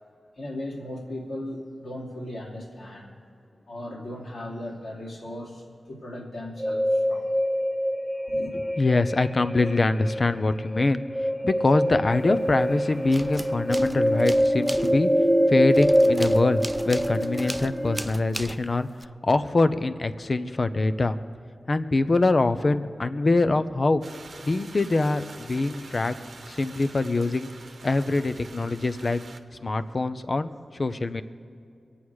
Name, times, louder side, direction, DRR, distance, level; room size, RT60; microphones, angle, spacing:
voice 1, 0.4-3.2 3.7-7.3 8.3-8.5 25.7-26.3 26.6-26.9 27.8-28.1 29.6-30.0 30.8-31.1, left 1 dB, 80° left, -4 dB, 2.8 m, -38 dB
sound 1, 6.6-18.0, equal, 10° left, 1.5 m, -25 dB
voice 2, 8.8-11.0 11.4-15.1 15.5-18.9 19.2-21.2 21.7-24.0 24.4-26.2 26.5-27.5 27.8-29.2 29.6-30.5 30.8-31.2, left 2 dB, 50° left, 11 dB, 0.7 m, -24 dB
sound 2, 12.2-12.7 13.0-19.1, right 1 dB, 10° right, 0.4 m, -38 dB
sound 3, 24.0-29.4, right 3 dB, 75° right, 0.9 m, -46 dB
23.5 x 8.7 x 4.8 m, 2.5 s
cardioid pair, 60°, 0 cm